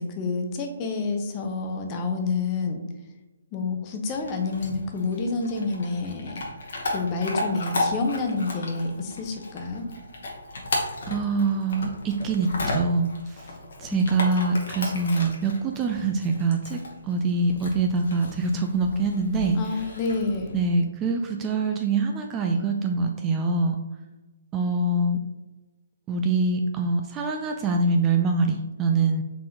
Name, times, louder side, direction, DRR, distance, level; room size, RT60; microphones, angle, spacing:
voice 1, 0.0-2.8 3.5-6.4 6.9-9.9 13.9-14.1 19.5-20.6, left 3 dB, 25° left, 4 dB, 0.6 m, -28 dB
Chewing mastication / Dog, 4.1-20.6, left 2 dB, 60° left, 1.0 m, -34 dB
voice 2, 11.1-13.5 13.8-19.6 20.5-23.8 24.5-25.2 26.1-29.2, right 3 dB, 20° right, 3 dB, 0.3 m, -24 dB
4.0 x 3.7 x 2.8 m, 1.1 s
figure-of-eight pair, 135°, 0 cm